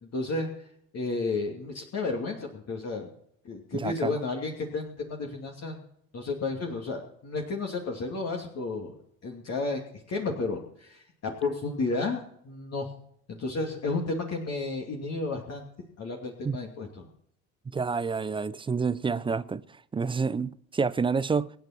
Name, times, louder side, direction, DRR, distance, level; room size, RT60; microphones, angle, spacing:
voice 1, 0.1-0.5 0.9-3.1 3.4-5.8 6.1-9.0 9.2-9.8 10.1-12.9 13.3-15.6 16.0-17.1, left 3 dB, 35° left, 2.7 m, -32 dB
voice 2, 3.7-4.2 16.4-16.6 17.7-19.6 19.9-21.5, right 5 dB, 10° right, 0.5 m, -28 dB
25.0 x 9.3 x 4.5 m
figure-of-eight pair, 65°, 43 cm